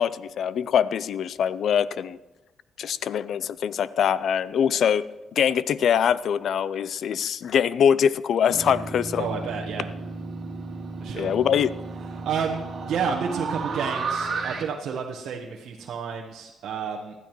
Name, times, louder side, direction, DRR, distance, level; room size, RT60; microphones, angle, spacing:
voice 1, 0.0-2.2 2.8-5.0 5.3-9.3 11.1-11.7, left 8 dB, 65° left, 17 dB, 0.4 m, -23 dB
sound 1, 8.5-14.6, right 4 dB, 50° right, 2.1 m, -33 dB
voice 2, 9.2-9.9 11.0-11.3 12.2-17.1, right 6 dB, 70° right, -1 dB, 1.1 m, -30 dB
19.5 x 12.5 x 3.1 m, 1.1 s
cardioid pair, 90°, 0 cm